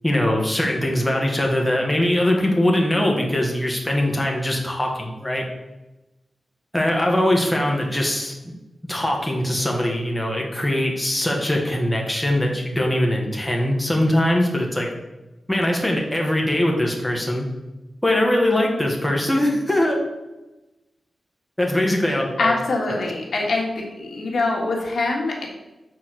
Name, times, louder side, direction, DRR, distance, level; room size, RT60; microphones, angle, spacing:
voice 1, 0.0-5.4 6.7-8.3 8.9-14.9 15.5-17.4 18.0-20.0 21.6-22.5, left 1 dB, 5° left, -1 dB, 1.2 m, -21 dB
voice 2, 22.4-25.5, left 2 dB, 70° left, -1 dB, 1.6 m, -24 dB
6.1 x 4.2 x 6.1 m, 1.0 s
wide cardioid pair, 125°, 0 cm